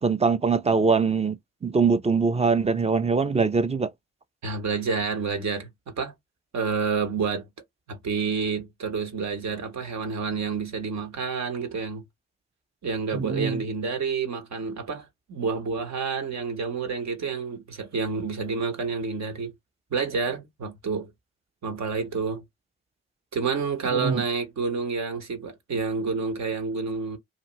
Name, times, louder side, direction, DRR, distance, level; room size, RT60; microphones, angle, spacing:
voice 1, 0.0-3.9 13.1-13.6 23.9-24.2, right 5 dB, 20° right, 0.5 m, -23 dB
voice 2, 4.4-6.1 6.5-7.5 7.9-12.0 12.8-19.5 19.9-21.1 21.6-22.4 23.3-27.2, right 5 dB, 60° right, 1.1 m, -29 dB
2.8 x 2.4 x 3.0 m
hypercardioid pair, 40°, 31 cm